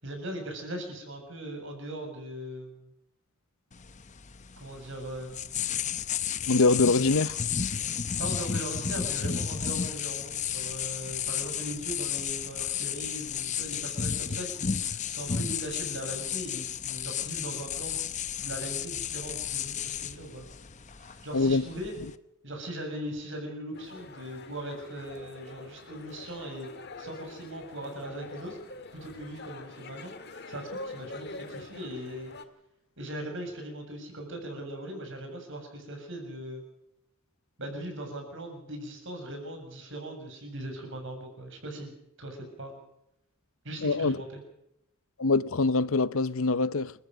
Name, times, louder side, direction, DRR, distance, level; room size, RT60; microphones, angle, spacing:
voice 1, 0.0-2.9 4.6-5.6 8.2-18.0 18.4-20.5 21.0-21.9 22.4-26.7 27.0-28.6 28.9-32.3 33.0-36.6 37.6-41.9 42.2-42.8 43.6-44.4, right 1 dB, 55° right, 7.3 m, -39 dB
sound 1, 3.7-22.2, left 8 dB, 30° left, 0.8 m, -33 dB
voice 2, 6.5-7.4 21.3-21.7 43.8-44.2 45.2-46.9, left 3 dB, 65° left, 0.8 m, -24 dB
sound 2, 23.7-32.4, left 2 dB, 50° left, 1.8 m, -45 dB
29.5 x 14.5 x 6.4 m
head